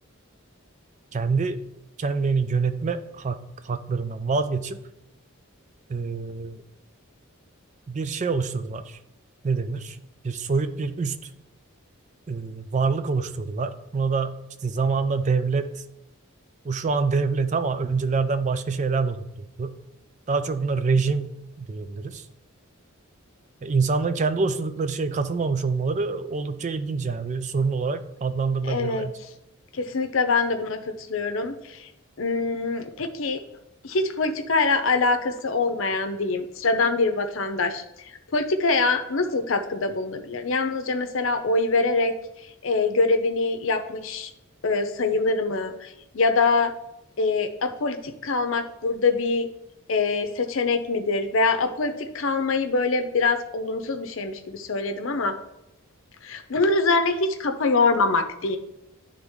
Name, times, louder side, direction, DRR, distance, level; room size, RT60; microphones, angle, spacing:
voice 1, 1.1-1.6 2.0-4.8 5.9-6.6 7.9-9.0 9.4-10.0 10.2-11.2 12.3-14.4 14.6-15.8 16.6-19.7 20.3-21.3 21.6-22.2 23.6-29.1, right 4 dB, 35° right, 10 dB, 0.4 m, -26 dB
voice 2, 28.6-29.1 29.7-31.9 32.2-33.4 33.8-37.8 38.3-42.1 42.6-44.3 44.6-46.7 47.2-49.5 49.9-55.4 56.2-58.6, left 3 dB, 65° left, 7 dB, 0.7 m, -24 dB
9.7 x 3.5 x 3.6 m, 0.84 s
head